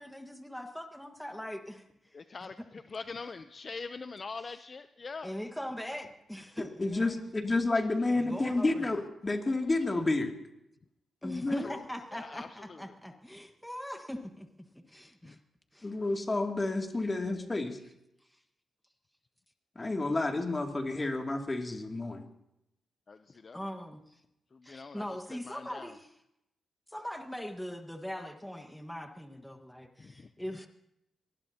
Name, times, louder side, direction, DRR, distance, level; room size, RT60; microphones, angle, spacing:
voice 1, 0.0-2.5 5.2-7.3 8.1-8.8 11.2-14.5 14.9-15.4 15.7-15.9 23.5-24.2 24.6-26.2 26.9-30.7, equal, 5° left, 5 dB, 1.5 m, -41 dB
voice 2, 2.1-5.3 11.6-11.8 12.1-12.8 15.2-15.3 23.1-23.6 24.5-25.0 25.4-25.9 30.0-30.3, left 4 dB, 40° left, 10 dB, 0.6 m, -43 dB
voice 3, 6.6-10.3 11.2-11.7 15.8-17.8 19.8-22.2, left 2 dB, 25° left, 2 dB, 2.5 m, -30 dB
24.0 x 19.5 x 2.9 m, 0.82 s
cardioid pair, 80°, 0 cm